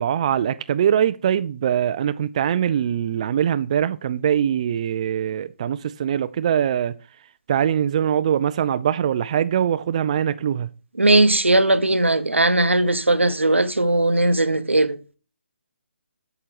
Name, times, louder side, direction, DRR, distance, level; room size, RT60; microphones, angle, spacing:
voice 1, 0.0-7.0 7.5-10.7, right 9 dB, 35° right, 0.3 m, -22 dB
voice 2, 11.0-15.0, right 2 dB, 85° right, 0.8 m, -18 dB
8.7 x 6.6 x 2.9 m
figure-of-eight pair, 145°, 6 cm